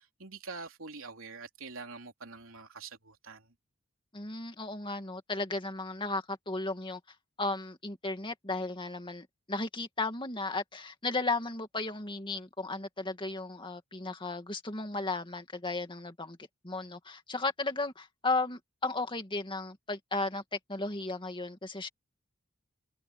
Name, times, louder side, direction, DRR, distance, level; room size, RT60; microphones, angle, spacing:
voice 1, 0.0-3.5, right 4 dB, 75° right, 3.4 m, -45 dB
voice 2, 4.1-7.0 7.4-16.4 16.6-21.9, left 3 dB, 25° left, 2.3 m, -35 dB
head